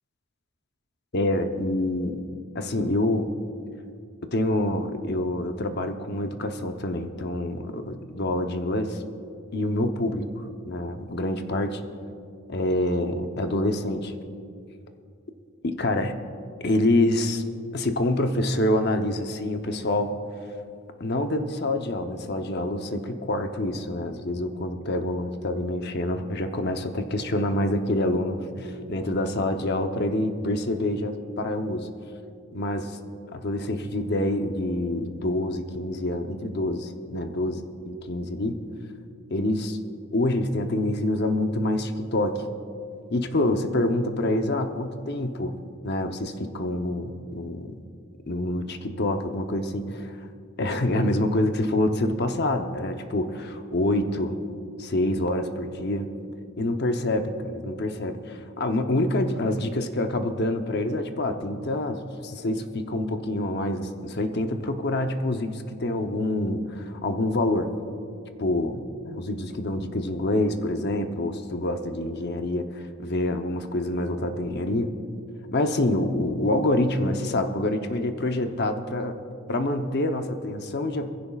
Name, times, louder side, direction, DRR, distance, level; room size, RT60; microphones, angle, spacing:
voice 1, 1.1-2.2 2.5-3.3 4.3-9.0 9.5-11.8 12.5-14.1 15.6-16.1 16.6-17.4 17.7-20.2 21.0-31.9 32.5-33.0 33.3-38.6 39.3-39.8 40.1-42.4 43.1-45.5 45.8-47.8 48.3-50.1 50.6-54.4 54.8-56.1 56.6-67.7 68.4-74.9 75.5-79.1 79.5-81.1, left 1 dB, 50° left, 6 dB, 0.8 m, -26 dB
22.0 x 15.5 x 2.4 m, 2.4 s
head